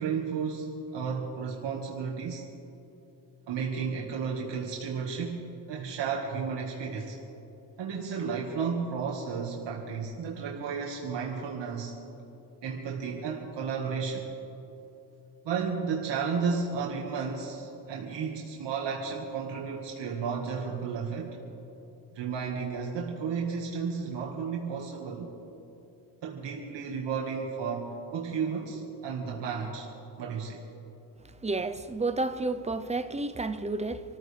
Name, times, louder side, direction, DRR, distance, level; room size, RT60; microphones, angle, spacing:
voice 1, 0.0-2.5 3.5-5.4 5.7-7.2 7.8-11.9 12.6-14.3 15.5-21.4 22.1-25.3 26.2-29.9 30.2-30.6, right 5 dB, 80° right, -1 dB, 1.8 m, -33 dB
voice 2, 31.4-34.0, right 2 dB, 15° right, 8 dB, 0.8 m, -31 dB
27.5 x 14.5 x 3.4 m, 3.0 s
cardioid pair, 110°, 42 cm